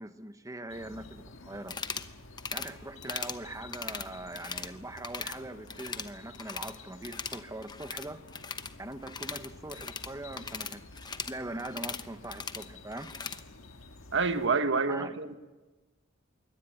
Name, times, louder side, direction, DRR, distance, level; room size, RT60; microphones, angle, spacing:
voice 1, 0.0-1.8 2.5-8.2 8.8-13.1 14.9-15.2, right 1 dB, 15° right, 1.1 m, -42 dB
sound 1, 0.7-14.5, left 2 dB, 75° left, 1.7 m, -51 dB
sound 2, 1.6-2.1 2.4-2.7 3.0-3.4 3.7-4.7 5.0-5.4 5.7-6.8 7.0-13.4, left 5 dB, 20° left, 0.9 m, -39 dB
voice 2, 14.1-15.4, right 4 dB, 65° right, 1.4 m, -27 dB
23.0 x 18.0 x 9.0 m
head